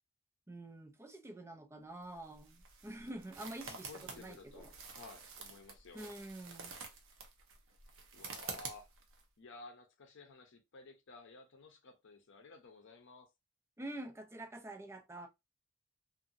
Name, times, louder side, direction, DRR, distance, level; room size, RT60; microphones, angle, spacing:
voice 1, 0.5-4.7 5.9-6.7 13.8-15.3, right 1 dB, 10° right, 0.4 m, -47 dB
sound 1, 2.0-9.2, right 4 dB, 65° right, 0.7 m, -49 dB
voice 2, 3.6-6.1 8.1-8.9 9.4-13.3, left 3 dB, 60° left, 0.6 m, -54 dB
2.7 x 2.5 x 2.5 m
head